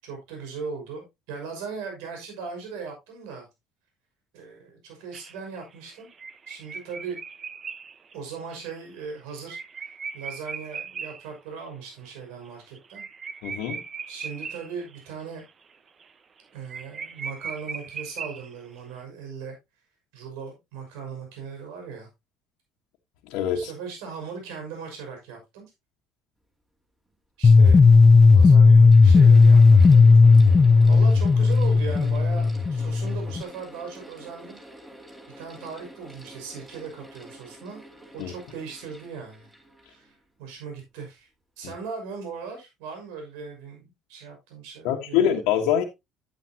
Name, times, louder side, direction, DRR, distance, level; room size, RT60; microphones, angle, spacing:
voice 1, 0.0-3.5 4.3-6.1 6.5-7.2 8.1-9.6 9.8-13.0 14.1-15.4 16.5-19.6 20.1-22.1 23.5-25.7 27.4-27.8 28.2-30.2 30.9-34.6 35.4-37.8 38.1-39.5 39.8-40.1 40.4-41.3 41.6-45.3, right 5 dB, 80° right, 5.9 m, -38 dB
sound 1, 5.1-11.3 11.7-11.8 12.0-12.1 12.4-15.0 15.4-15.7 16.0-16.1 16.4-16.5 16.7-18.8, right 5 dB, 40° right, 1.0 m, -38 dB
voice 2, 13.4-13.8 23.3-23.7 38.2-38.3 44.8-45.8, left 9 dB, 75° left, 1.4 m, -24 dB
Mechanical fan, 27.1-27.2 28.0-40.7, right 1 dB, 15° right, 3.9 m, -48 dB
sound 2, 27.4-33.4, left 4 dB, 30° left, 0.6 m, -14 dB
11.0 x 8.8 x 2.8 m
supercardioid pair, 75°, 0 cm